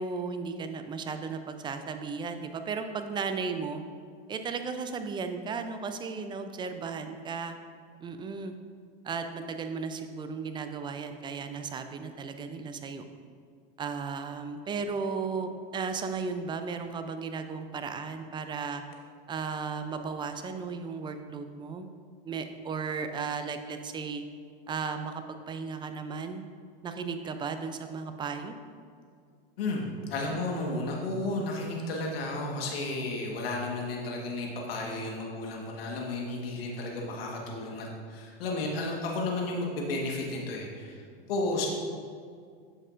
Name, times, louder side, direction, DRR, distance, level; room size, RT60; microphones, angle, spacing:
voice 1, 0.0-3.8 4.3-7.6 8.0-8.5 9.0-13.0 13.8-18.8 19.3-21.9 22.2-24.2 24.7-26.4 26.8-28.6, right 5 dB, 15° right, 8 dB, 0.4 m, -35 dB
voice 2, 29.6-41.0 41.3-41.7, left 2 dB, 80° left, -1 dB, 1.4 m, -33 dB
8.8 x 6.6 x 2.5 m, 2.2 s
hypercardioid pair, 120°, 29 cm